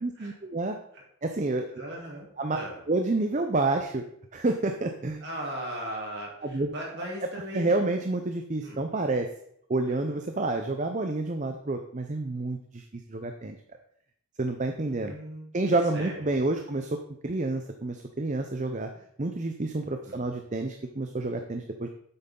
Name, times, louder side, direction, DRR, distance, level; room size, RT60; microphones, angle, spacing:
voice 1, 0.0-0.8 1.2-1.7 2.4-2.6 2.9-4.0 4.3-5.2 6.4-6.7 7.5-9.3 9.7-12.8 13.1-13.6 14.4-15.1 15.5-17.0 17.2-18.9 19.2-21.9, right 2 dB, 35° right, 5 dB, 0.6 m, -29 dB
voice 2, 1.8-2.3 2.5-2.8 5.2-7.9 8.6-8.8 9.8-10.2 15.0-15.5 15.9-16.2 20.0-20.3, equal, 50° right, -2 dB, 3.2 m, -38 dB
9.5 x 8.0 x 3.8 m, 0.70 s
head